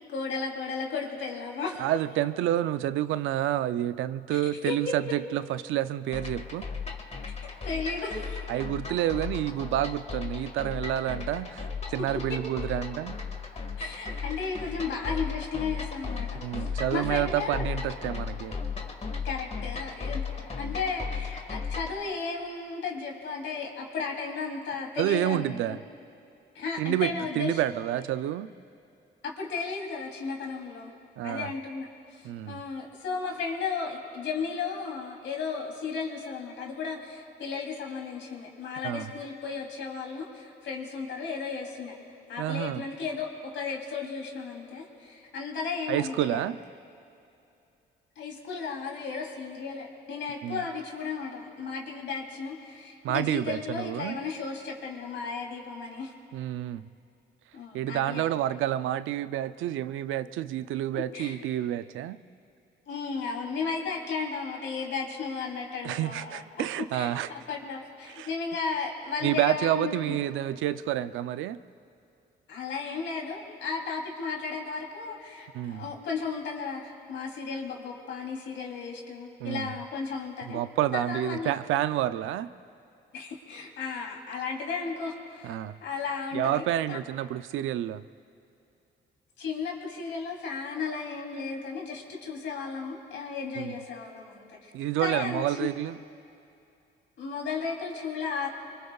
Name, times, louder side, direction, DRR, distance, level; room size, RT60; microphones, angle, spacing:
voice 1, 0.1-1.8 4.3-4.9 7.6-8.4 12.0-12.4 13.8-16.3 16.6-17.7 19.2-25.8 26.5-27.6 29.2-30.9 31.2-42.0 42.3-46.4 48.2-56.1 57.5-58.3 60.9-61.4 62.9-66.4 66.9-70.1 72.5-80.6 80.9-81.5 83.1-85.6 85.8-87.0 89.4-94.7 95.0-95.7 97.2-98.5, left 5 dB, 70° left, 0 dB, 3.2 m, -34 dB
voice 2, 1.8-6.7 8.5-13.2 16.4-18.6 25.0-25.8 26.8-28.5 31.2-31.5 32.2-32.6 38.8-39.1 42.4-42.8 45.9-46.6 50.4-50.6 53.0-54.2 56.3-56.9 57.7-62.2 65.8-67.3 68.1-68.3 69.2-71.6 75.5-75.9 79.4-79.7 80.5-82.5 85.4-85.8 86.3-88.0 93.6-93.8 94.7-96.0, right 12 dB, 85° right, 13 dB, 0.5 m, -29 dB
sound 1, 6.1-22.0, left 5 dB, 35° left, 1.7 m, -36 dB
25.0 x 24.0 x 2.4 m, 2.6 s
cardioid pair, 90°, 20 cm